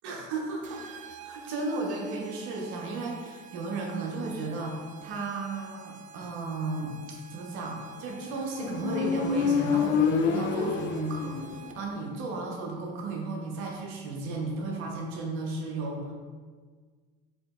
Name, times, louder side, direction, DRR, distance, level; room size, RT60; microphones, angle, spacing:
voice 1, 0.0-0.8 1.2-16.1, right 3 dB, 70° right, -1 dB, 0.9 m, -34 dB
sound 1, 0.6-12.0, right 5 dB, 35° right, 0.4 m, -48 dB
Motorcycle, 8.1-11.8, left 6 dB, 55° left, 0.5 m, -27 dB
7.1 x 2.9 x 2.4 m, 1.5 s
supercardioid pair, 90°, 21 cm